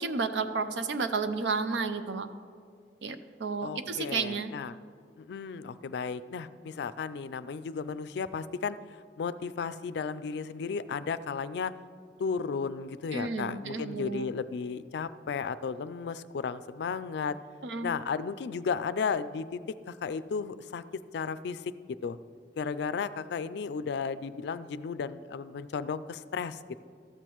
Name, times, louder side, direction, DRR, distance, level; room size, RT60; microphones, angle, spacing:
voice 1, 0.0-2.3 3.0-4.5 13.1-14.3 17.6-17.9, right 4 dB, 90° right, 10 dB, 0.5 m, -32 dB
voice 2, 3.6-4.8 5.2-8.8 9.2-11.7 12.2-17.4 17.8-19.6 19.9-20.8 21.1-21.7 22.0-22.2 22.6-26.8, left 5 dB, 70° left, 14 dB, 0.3 m, -34 dB
13.0 x 8.2 x 3.0 m, 2.2 s
head